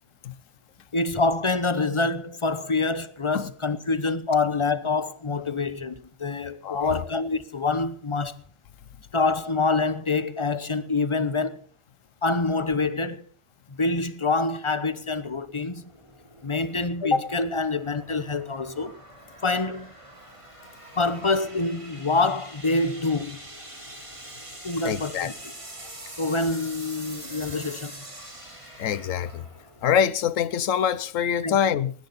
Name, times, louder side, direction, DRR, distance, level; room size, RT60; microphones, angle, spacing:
voice 1, 0.9-8.4 9.1-11.7 12.2-13.3 13.8-15.9 16.4-19.0 19.4-19.9 21.0-23.4 24.6-25.3 26.2-28.0 31.4-31.6, left 3 dB, 25° left, 0.8 m, -26 dB
voice 2, 6.6-7.0 24.8-25.3 28.8-29.4 29.8-31.9, left 8 dB, 70° left, 1.2 m, -25 dB
sound 1, 15.0-30.4, right 1 dB, 20° right, 3.4 m, -44 dB
19.5 x 15.0 x 4.2 m
omnidirectional pair, 1.4 m